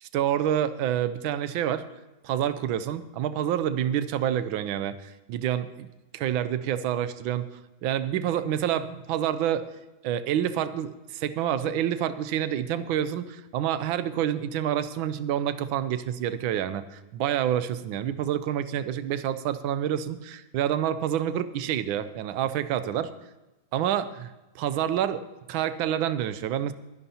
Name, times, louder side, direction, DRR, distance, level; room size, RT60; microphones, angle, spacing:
voice 1, 0.0-1.8 2.2-5.9 6.1-7.5 7.8-9.6 10.0-23.1 23.7-24.3 24.6-25.2 25.5-26.7, right 10 dB, 80° right, 13 dB, 1.4 m, -28 dB
22.5 x 11.0 x 2.9 m, 1.1 s
omnidirectional pair, 2.2 m